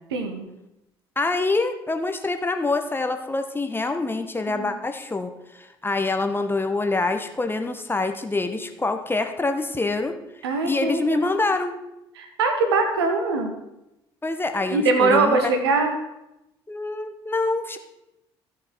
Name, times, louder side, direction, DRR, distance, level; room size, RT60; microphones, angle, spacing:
voice 1, 0.1-0.5 4.5-4.7 10.4-11.2 12.2-13.5 14.7-15.9, right 3 dB, 75° right, 5 dB, 1.5 m, -22 dB
voice 2, 1.2-10.2 10.6-11.7 14.2-15.5 16.7-17.8, left 3 dB, 15° left, 7 dB, 1.2 m, -25 dB
15.0 x 5.8 x 5.9 m, 0.91 s
figure-of-eight pair, 50°, 14 cm